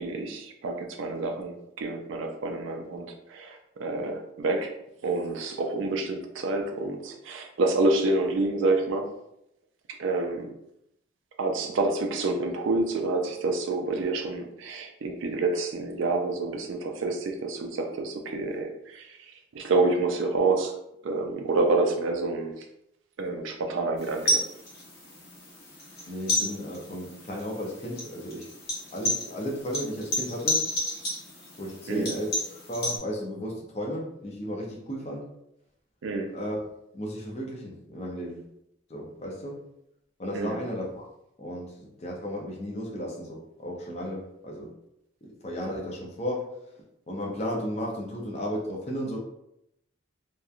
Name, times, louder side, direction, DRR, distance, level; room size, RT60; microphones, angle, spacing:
voice 1, 0.0-4.7 5.0-9.1 10.0-10.5 11.4-20.7 21.0-22.6 23.2-24.4 31.9-32.1 36.0-36.3 40.3-40.6, right 3 dB, 70° right, 3 dB, 0.4 m, -28 dB
sound 1, 24.0-33.0, left 1 dB, 50° left, 0.9 m, -32 dB
voice 2, 26.1-28.5 28.9-30.6 31.6-32.4 32.7-35.3 36.3-38.4 38.9-39.6 40.2-41.0 41.4-44.7 45.2-46.5 47.1-49.2, equal, 30° left, -2 dB, 0.5 m, -34 dB
2.9 x 2.2 x 2.4 m, 0.81 s
head